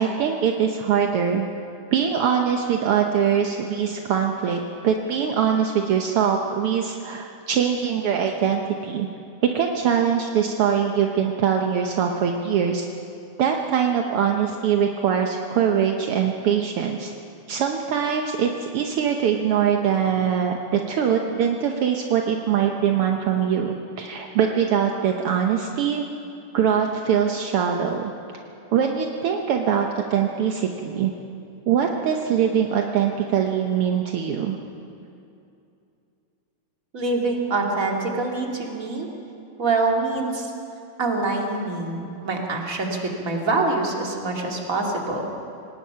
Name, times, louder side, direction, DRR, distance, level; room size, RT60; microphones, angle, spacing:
voice 1, 0.0-1.5 1.9-9.1 9.5-12.9 13.4-17.1 17.5-26.1 26.5-28.1 28.7-31.1 31.7-34.6, right 8 dB, 70° right, 2 dB, 1.4 m, -22 dB
voice 2, 36.9-39.1 39.6-40.5 41.0-45.2, right 3 dB, 30° right, 0 dB, 2.3 m, -25 dB
26.0 x 19.0 x 5.7 m, 2.6 s
omnidirectional pair, 3.7 m